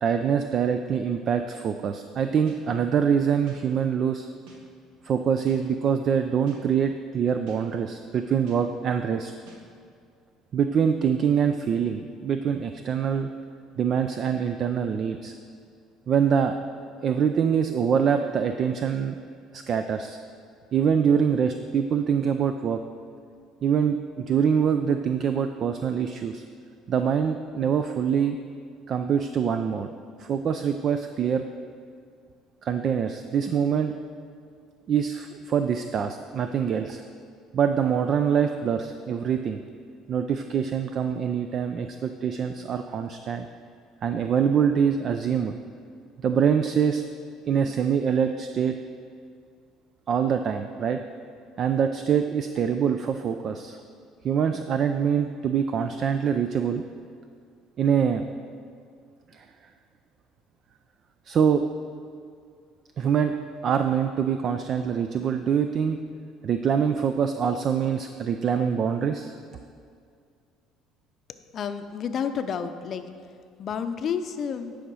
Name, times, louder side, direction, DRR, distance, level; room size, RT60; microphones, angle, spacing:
voice 1, 0.0-4.3 5.0-9.3 10.5-13.3 13.8-15.3 16.1-16.6 17.0-19.2 19.5-20.2 20.7-22.8 23.6-26.4 26.9-28.4 28.9-29.9 30.2-31.4 32.6-33.9 34.9-37.0 37.5-39.6 40.1-43.5 44.0-45.6 46.2-47.0 47.5-48.8 50.1-51.0 51.6-53.8 54.2-56.8 57.8-58.2 59.3-59.5 61.3-61.6 63.0-63.4 63.6-66.0 66.4-69.3, right 7 dB, 45° right, 8 dB, 0.4 m, -24 dB
sound 1, 2.5-2.6 3.5-3.6 4.5-4.6 5.5-5.6 6.5-6.6 7.5-7.6 8.5-8.6 9.5-9.6, right 3 dB, 85° right, 1.5 m, -50 dB
voice 2, 71.5-73.1 73.6-74.8, left 7 dB, 45° left, 9 dB, 0.6 m, -30 dB
10.0 x 5.0 x 6.2 m, 2.3 s
cardioid pair, 120°, 0 cm